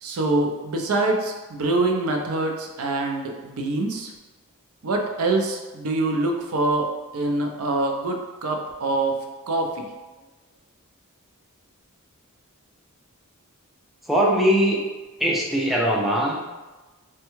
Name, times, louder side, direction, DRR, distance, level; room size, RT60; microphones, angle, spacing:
voice 1, 0.0-4.1 4.8-9.2 9.5-9.9, right 2 dB, 70° right, 2 dB, 0.5 m, -25 dB
voice 2, 14.1-14.9 15.2-16.4, equal, ahead, -3 dB, 0.3 m, -21 dB
3.4 x 2.2 x 3.0 m, 1.2 s
head